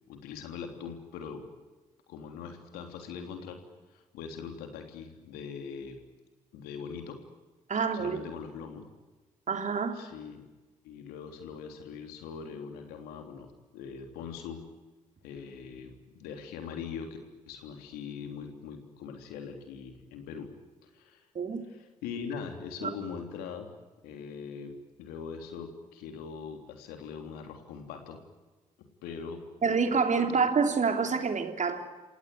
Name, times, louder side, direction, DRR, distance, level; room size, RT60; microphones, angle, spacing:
voice 1, 0.1-1.4 2.1-3.6 3.9-6.0 6.5-7.2 7.9-8.8 9.9-10.4 10.8-14.6 15.2-17.2 17.5-20.5 20.8-21.2 21.7-23.7 24.0-24.7 25.0-28.2 29.0-29.4, left 6 dB, 80° left, 5 dB, 3.3 m, -41 dB
voice 2, 7.7-8.2 9.5-10.0 21.3-21.6 22.8-22.9 29.6-31.8, right 5 dB, 50° right, 6 dB, 3.3 m, -27 dB
28.5 x 17.0 x 9.6 m, 1.2 s
hypercardioid pair, 40°, 16 cm